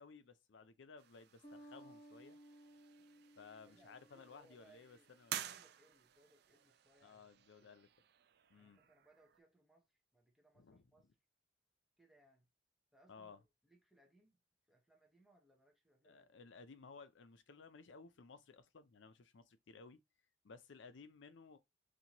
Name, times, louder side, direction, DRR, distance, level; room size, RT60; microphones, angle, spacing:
voice 1, 0.0-2.4 3.4-5.4 7.0-7.9 8.5-8.8 10.5-11.1 13.1-13.4 16.0-20.0 20.4-21.6, left 4 dB, 70° left, 0.5 m, -58 dB
sound 1, 1.0-9.4, right 11 dB, 55° right, 0.4 m, -52 dB
Bass guitar, 1.4-5.0, right 1 dB, 30° left, 1.0 m, -60 dB
voice 2, 3.6-5.1 5.4-7.3 7.6-7.7 8.5-11.1 12.0-12.5 12.9-13.3 13.6-14.4 14.7-16.4, right 1 dB, ahead, 0.7 m, -70 dB
4.2 x 2.6 x 2.9 m
head